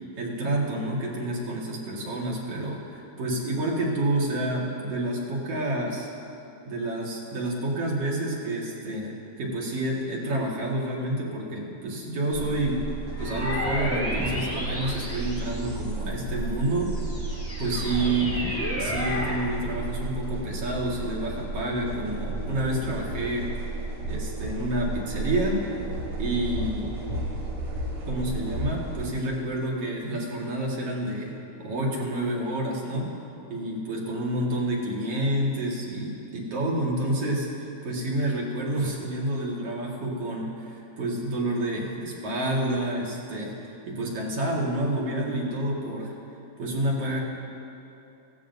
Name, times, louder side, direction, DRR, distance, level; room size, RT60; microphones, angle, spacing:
voice 1, 0.2-6.1 6.7-12.8 13.2-16.9 17.6-18.4 18.8-23.5 24.1-25.7 26.2-26.9 28.1-31.3 31.6-33.1 33.5-37.5 37.8-43.5 43.9-46.1 46.6-47.2, right 1 dB, 55° right, -3 dB, 2.5 m, -29 dB
sound 1, 12.3-29.1, right 2 dB, 90° right, 3.5 m, -33 dB
sound 2, 13.1-16.1 16.6-19.5, equal, 5° left, 1.2 m, -32 dB
18.0 x 15.5 x 2.7 m, 2.8 s
omnidirectional pair, 3.5 m